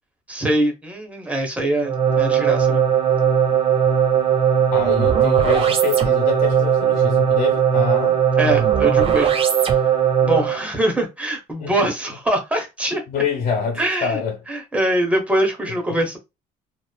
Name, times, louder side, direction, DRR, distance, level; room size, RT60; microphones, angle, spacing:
voice 1, 0.3-2.8 8.4-9.4 10.2-13.0 13.8-14.2 14.5-16.2, right 1 dB, 10° right, 0.9 m, -23 dB
sound 1, 1.8-10.6, right 8 dB, 35° right, 0.5 m, -18 dB
voice 2, 4.7-8.2 11.6-11.9 13.1-14.4, left 6 dB, 65° left, 1.1 m, -26 dB
2.9 x 2.0 x 2.2 m
cardioid pair, 110°, 17 cm